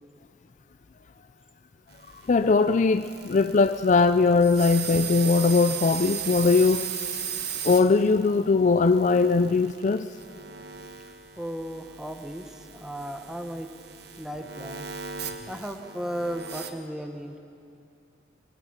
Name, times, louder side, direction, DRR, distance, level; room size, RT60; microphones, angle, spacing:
sound 1, 1.9-16.7, right 8 dB, 60° right, 1.3 m, -37 dB
voice 1, 2.3-6.8 7.6-10.1, left 4 dB, 40° left, 11 dB, 0.4 m, -20 dB
voice 2, 11.4-13.7 14.2-14.9 15.5-17.4, equal, 5° right, 5 dB, 1.1 m, -35 dB
22.5 x 22.5 x 5.8 m, 2.6 s
head